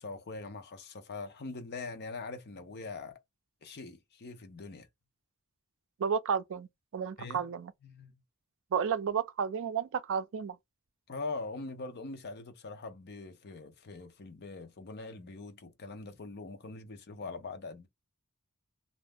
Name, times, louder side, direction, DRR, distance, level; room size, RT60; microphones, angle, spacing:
voice 1, 0.0-3.2 3.6-4.9 7.2-7.4 7.8-8.1 11.1-17.9, left 3 dB, 50° left, 0.6 m, -42 dB
voice 2, 6.0-7.7 8.7-10.6, right 7 dB, 60° right, 0.4 m, -32 dB
2.6 x 2.0 x 3.3 m
head